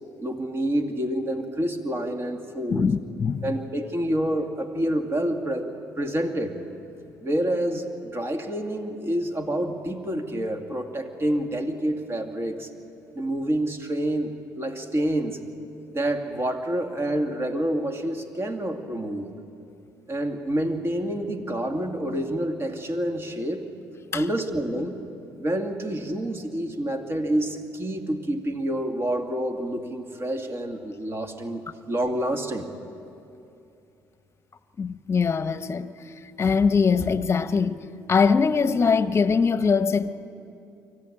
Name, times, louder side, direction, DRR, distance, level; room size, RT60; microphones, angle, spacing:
voice 1, 0.2-2.9 3.4-5.7 6.0-6.6 7.2-12.7 13.1-15.4 15.9-19.3 20.1-23.7 24.1-25.0 25.4-32.7, right 1 dB, 35° right, 2.4 m, -28 dB
voice 2, 2.7-3.4 24.1-24.2 34.8-35.9 36.4-40.1, left 5 dB, 35° left, 1.0 m, -22 dB
24.5 x 15.5 x 8.8 m
supercardioid pair, 70°, 8 cm